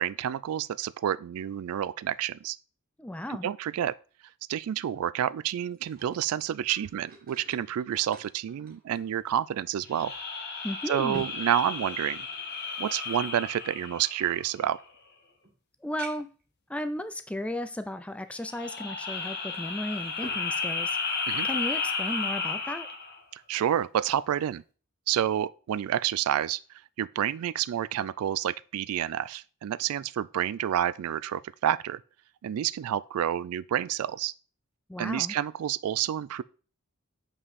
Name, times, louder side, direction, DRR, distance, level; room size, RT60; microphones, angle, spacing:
voice 1, 0.0-2.6 3.3-3.9 4.5-10.1 10.9-12.3 12.8-14.8 21.3-21.5 23.3-24.6 25.1-26.6 27.0-32.0 32.4-34.3 35.0-36.4, right 10 dB, 80° right, 0.3 m, -29 dB
voice 2, 3.0-3.5 10.6-11.3 15.8-16.3 16.7-21.2 21.4-22.9 34.9-35.3, left 1 dB, 5° left, 0.4 m, -34 dB
sound 1, 5.5-9.6 9.9-10.0 10.6-12.6 13.4-14.9 15.4-15.5 16.0-16.4 17.2-17.3 19.5-20.5 20.8-21.7 22.1-22.3, right 3 dB, 40° right, 1.6 m, -50 dB
sound 2, 9.9-14.6 18.4-23.2, left 4 dB, 45° left, 1.4 m, -33 dB
7.2 x 5.5 x 4.1 m
head